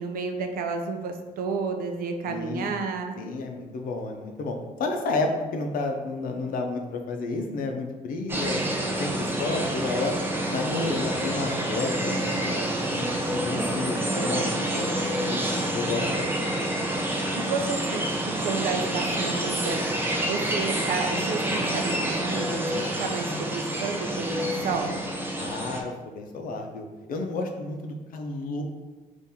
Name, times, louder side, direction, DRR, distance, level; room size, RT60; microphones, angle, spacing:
voice 1, 0.0-3.1 17.3-19.8 20.2-25.0, right 4 dB, 70° right, 4 dB, 0.5 m, -31 dB
voice 2, 2.2-2.7 3.2-8.7 9.0-10.2 10.5-12.6 12.9-13.1 13.5-15.4 15.7-16.5 25.4-28.6, left 3 dB, 65° left, 3 dB, 0.6 m, -31 dB
sound 1, 8.3-25.8, right 1 dB, 15° right, 0.5 m, -28 dB
4.2 x 2.6 x 3.6 m, 1.3 s
cardioid pair, 135°, 15 cm